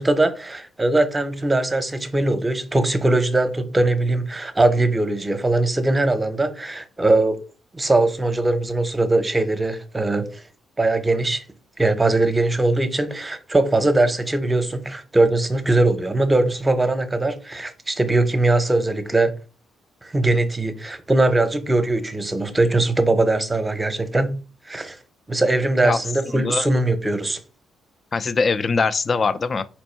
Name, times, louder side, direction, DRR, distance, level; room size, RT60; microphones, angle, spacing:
voice 1, 0.0-7.4 7.7-10.4 10.8-11.4 11.8-19.3 20.0-25.0 25.3-27.4, right 2 dB, 15° right, 0.8 m, -21 dB
voice 2, 26.3-26.7 28.1-29.6, left 4 dB, 40° left, 0.4 m, -22 dB
4.3 x 2.6 x 4.4 m
cardioid pair, 90°, 0 cm